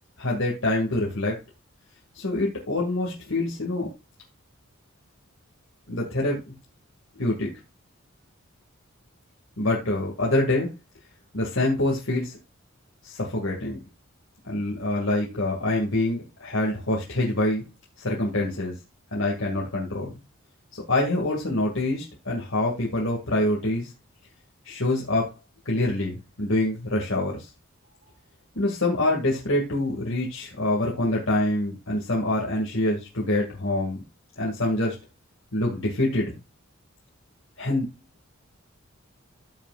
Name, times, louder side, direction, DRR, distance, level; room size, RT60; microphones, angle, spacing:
voice 1, 0.2-1.4 2.1-3.9 5.9-6.4 7.2-7.5 9.6-10.7 11.3-12.4 13.0-13.8 14.4-17.6 18.0-18.7 19.1-20.1 20.7-23.9 24.6-25.3 25.7-27.5 28.6-34.0 34.4-35.0 35.5-36.3 37.6-37.9, left 1 dB, 70° left, -3 dB, 2.3 m, -25 dB
14.5 x 6.1 x 2.5 m, 0.26 s
head